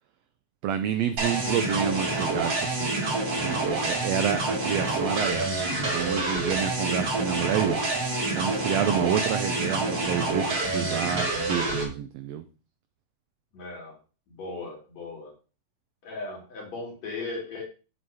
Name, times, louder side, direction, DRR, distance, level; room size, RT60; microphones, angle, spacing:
voice 1, 0.6-3.1 3.4-7.8 8.3-12.4, right 9 dB, 80° right, 9 dB, 1.5 m, -29 dB
sound 1, 1.2-11.8, right 2 dB, 50° right, 3.4 m, -27 dB
voice 2, 13.5-14.0 14.3-15.3 16.0-17.6, left 3 dB, 60° left, -1 dB, 3.9 m, -37 dB
7.7 x 7.7 x 2.8 m, 0.33 s
omnidirectional pair, 3.5 m